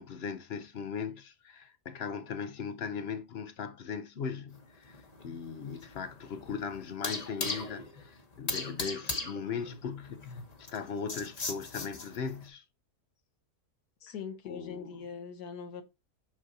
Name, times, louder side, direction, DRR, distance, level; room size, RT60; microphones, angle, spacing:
voice 1, 0.0-12.6 14.1-14.2 14.5-15.0, left 6 dB, 55° left, 0.8 m, -39 dB
sound 1, 4.5-12.4, left 3 dB, 30° left, 1.0 m, -39 dB
voice 2, 14.0-15.8, left 6 dB, 75° left, 1.4 m, -41 dB
6.1 x 5.9 x 2.7 m
omnidirectional pair, 1.7 m